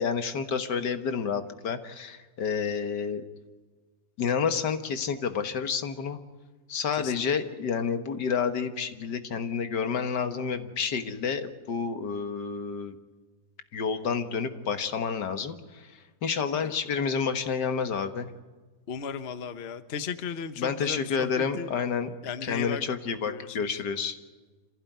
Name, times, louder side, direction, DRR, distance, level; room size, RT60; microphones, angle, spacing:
voice 1, 0.0-3.2 4.2-6.2 6.7-13.0 13.7-18.3 20.6-22.1 22.4-24.2, left 6 dB, 75° left, 9 dB, 2.0 m, -29 dB
voice 2, 6.9-7.3 16.6-17.0 18.9-21.7 22.2-22.8 23.3-23.7, left 7 dB, 40° left, 11 dB, 1.1 m, -36 dB
26.0 x 16.0 x 9.3 m, 1.4 s
omnidirectional pair, 1.9 m